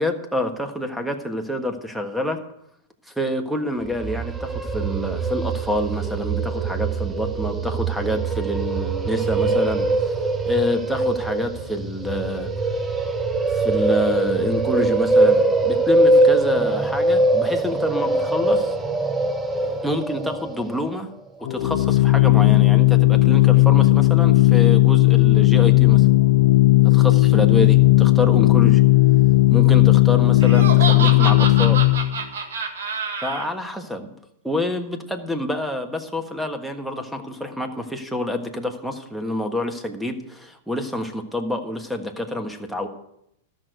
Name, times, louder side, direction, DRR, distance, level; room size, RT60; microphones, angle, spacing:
voice 1, 0.0-2.4 3.2-10.1 10.4-12.5 13.5-18.7 19.8-21.1 21.5-26.1 26.8-28.8 29.5-31.8 33.2-34.1 34.4-42.9, left 1 dB, ahead, 6 dB, 1.4 m, -27 dB
sound 1, 3.9-20.9, right 2 dB, 15° right, 1.0 m, -22 dB
Organ, 21.4-32.2, left 19 dB, 65° left, 0.5 m, -15 dB
Laughter, 30.4-33.4, right 5 dB, 80° right, 1.8 m, -27 dB
13.0 x 6.4 x 7.9 m, 0.78 s
hypercardioid pair, 115°, 0 cm